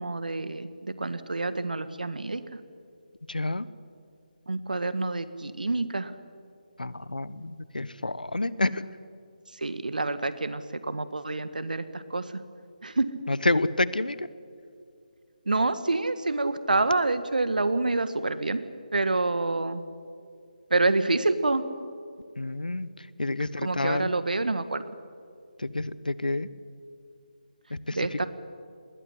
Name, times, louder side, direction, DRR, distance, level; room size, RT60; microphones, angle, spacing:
voice 1, 0.0-2.4 4.5-6.1 9.6-12.3 12.8-13.1 15.4-18.6 18.9-19.8 20.7-21.6 23.6-24.8 27.9-28.3, right 2 dB, 80° right, 13 dB, 1.6 m, -27 dB
voice 2, 3.3-3.7 6.8-8.8 13.3-14.3 22.4-24.1 25.6-26.5 27.7-28.3, left 2 dB, 90° left, 17 dB, 1.0 m, -29 dB
20.5 x 17.5 x 9.8 m, 2.4 s
figure-of-eight pair, 155°, 4 cm